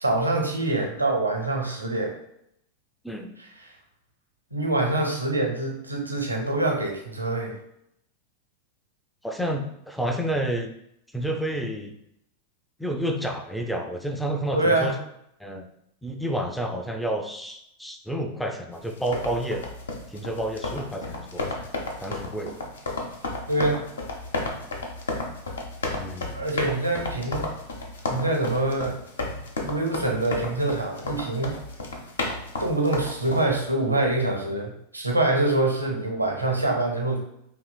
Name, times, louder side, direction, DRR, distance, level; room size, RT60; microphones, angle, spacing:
voice 1, 0.0-2.1 3.4-3.7 4.5-7.6 14.5-15.0 23.5-23.8 26.3-27.5 28.1-29.0 29.6-31.5 32.6-37.2, right 2 dB, 85° right, 1 dB, 0.7 m, -25 dB
voice 2, 9.2-10.7 11.1-12.0 12.8-15.0 15.4-15.7 16.0-19.7 20.1-21.7 22.0-22.6 25.9-26.5, right 1 dB, ahead, 4 dB, 0.3 m, -30 dB
sound 1, 18.9-33.4, left 2 dB, 70° left, 0.6 m, -33 dB
4.6 x 2.9 x 2.2 m, 0.77 s
figure-of-eight pair, 90°, 0 cm